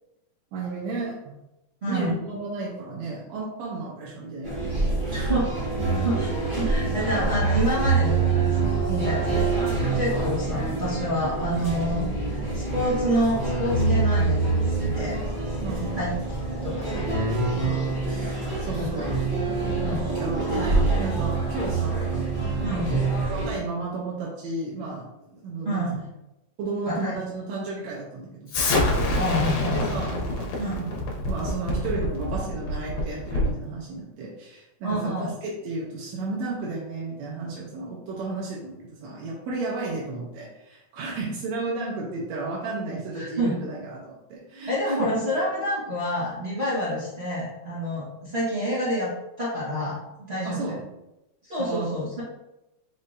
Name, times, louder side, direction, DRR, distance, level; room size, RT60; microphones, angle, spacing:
voice 1, 0.5-1.4 1.9-4.6 5.0-5.4 15.6-16.0 17.5-19.2 20.2-22.2 22.6-25.9 26.6-45.2 50.4-50.8 51.6-52.0, right 3 dB, 75° right, -4 dB, 1.9 m, -33 dB
voice 2, 1.8-2.2 5.1-5.5 6.0-9.4 9.9-15.2 16.0-16.1 16.4-17.1 18.7-18.9 19.8-20.1 22.6-22.9 25.6-26.0 26.9-27.1 29.1-30.0 30.6-30.7 34.8-35.3 43.2-43.5 44.7-49.1 49.4-50.0 50.3-50.6 51.4-52.2, equal, 45° right, -10 dB, 0.8 m, -28 dB
Busy Coffee Shop Live Acoustic Guitar Music, 4.4-23.6, right 3 dB, 25° right, 1.1 m, -25 dB
Explosion, 28.5-33.6, left 1 dB, 80° left, 2.2 m, -26 dB
5.3 x 3.6 x 2.6 m, 0.93 s
omnidirectional pair, 3.4 m